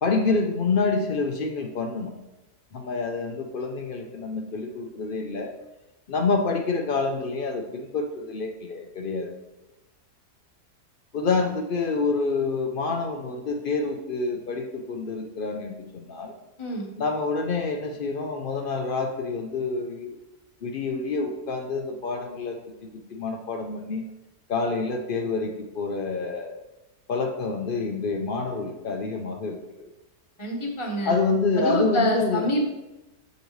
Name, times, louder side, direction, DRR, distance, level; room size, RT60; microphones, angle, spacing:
voice 1, 0.0-2.1 2.7-5.5 6.1-9.3 11.1-16.3 17.0-20.2 20.6-24.1 24.5-26.6 27.1-29.9 31.0-32.4, left 4 dB, 85° left, 2 dB, 0.4 m, -27 dB
voice 2, 30.4-31.1 31.6-32.7, equal, 25° left, 1 dB, 0.8 m, -26 dB
6.6 x 5.2 x 3.1 m, 0.99 s
omnidirectional pair, 1.7 m